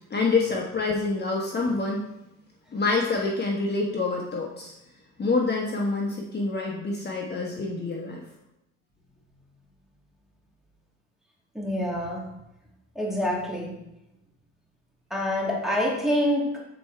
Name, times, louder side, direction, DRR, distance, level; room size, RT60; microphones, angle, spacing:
voice 1, 0.1-2.0 2.7-4.7 5.2-8.2, left 3 dB, 35° left, -1 dB, 1.2 m, -26 dB
voice 2, 11.5-12.3 13.0-13.7 15.1-16.5, equal, ahead, -3 dB, 2.2 m, -26 dB
7.9 x 4.5 x 4.5 m, 0.87 s
cardioid pair, 90°, 30 cm